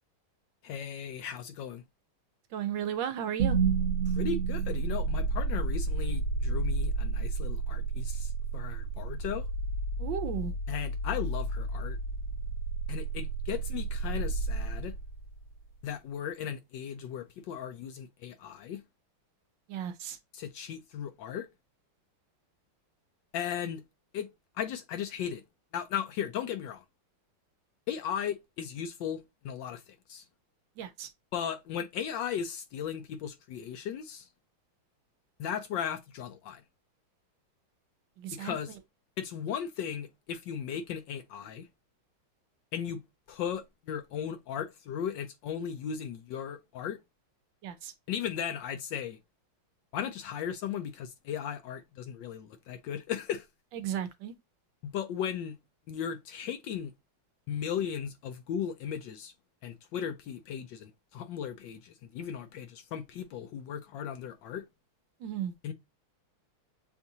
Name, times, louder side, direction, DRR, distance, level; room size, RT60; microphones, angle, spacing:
voice 1, 0.6-1.8 4.1-9.5 10.7-12.0 12.9-15.0 15.8-18.8 20.3-21.5 23.3-23.8 24.1-24.3 24.6-25.4 25.7-26.8 27.9-29.8 30.1-30.2 31.3-34.3 35.4-36.6 38.3-38.7 39.2-41.7 42.7-43.0 43.3-47.0 48.1-49.2 49.9-53.5 54.8-55.6 55.9-56.9 57.5-59.3 59.6-64.6 65.6-65.7, left 8 dB, 75° left, 1.1 m, -36 dB
voice 2, 2.5-3.6 10.0-10.5 19.7-20.2 30.8-31.1 38.2-38.8 47.6-47.9 53.7-54.3 65.2-65.5, right 9 dB, 75° right, 1.2 m, -35 dB
sound 1, 3.4-15.5, right 4 dB, 45° right, 0.7 m, -31 dB
7.0 x 2.5 x 2.7 m
omnidirectional pair, 2.3 m